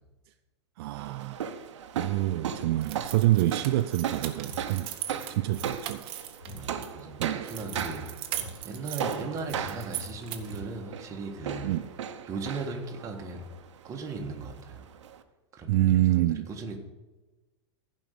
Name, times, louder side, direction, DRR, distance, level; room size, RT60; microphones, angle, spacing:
voice 1, 0.8-1.4 1.9-4.9 5.3-6.0 7.2-7.5 11.6-11.9 15.7-16.5, right 15 dB, 55° right, 0.4 m, -26 dB
sound 1, 1.0-15.2, right 8 dB, 85° right, 1.1 m, -38 dB
sound 2, 2.8-6.9 7.4-10.6, right 12 dB, 35° right, 1.2 m, -39 dB
sound 3, 4.4-4.8 5.4-5.8 6.4-6.8 7.6-7.9 8.3-8.8 9.4-9.8 10.4-10.8, equal, 35° left, 2.1 m, -44 dB
voice 2, 6.5-8.1 8.3-11.7 12.3-13.5 13.8-14.8 15.5-16.8, right 3 dB, 20° right, 1.6 m, -38 dB
15.5 x 5.4 x 6.8 m
supercardioid pair, 150°, 15 cm